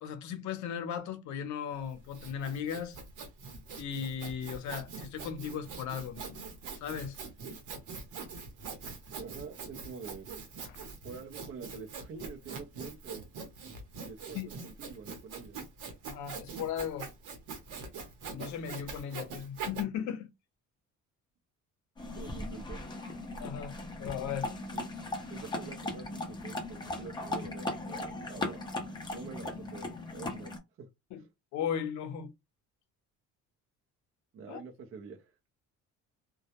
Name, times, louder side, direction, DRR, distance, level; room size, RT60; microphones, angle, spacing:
voice 1, 0.0-3.0 3.8-6.4 6.8-7.2 10.6-10.9 14.3-14.5 16.0-17.1 18.3-20.3 23.4-24.5 31.1-31.2 31.5-32.3 34.5-34.6, left 8 dB, 70° left, 0.6 m, -37 dB
Sawing, 1.8-19.8, right 4 dB, 80° right, 0.9 m, -43 dB
voice 2, 9.1-10.3 11.0-13.2 14.0-15.6 22.1-22.8 24.7-24.9 25.3-28.6 29.1-30.5 30.8-30.9 34.3-35.3, right 5 dB, 45° right, 0.6 m, -46 dB
sound 1, 22.0-30.6, left 2 dB, 15° left, 0.5 m, -38 dB
2.2 x 2.0 x 2.8 m
cardioid pair, 130°, 30 cm